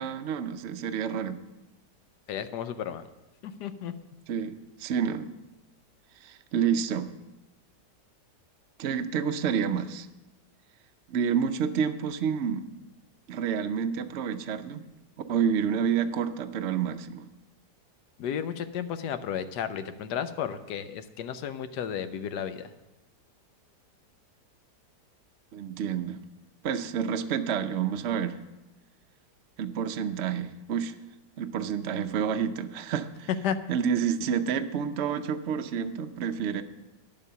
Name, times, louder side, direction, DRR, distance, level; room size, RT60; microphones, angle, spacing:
voice 1, 0.0-1.4 4.3-5.3 6.2-7.1 8.8-10.1 11.1-12.7 13.3-14.9 15.3-17.3 25.5-26.2 26.6-28.4 29.6-30.9 31.4-33.3 33.7-36.6, right 7 dB, 60° right, 8 dB, 0.8 m, -29 dB
voice 2, 2.3-3.1 3.4-3.9 18.2-22.6 33.4-33.6, left 8 dB, 80° left, 10 dB, 1.3 m, -33 dB
10.5 x 7.3 x 6.8 m, 0.99 s
omnidirectional pair, 1.8 m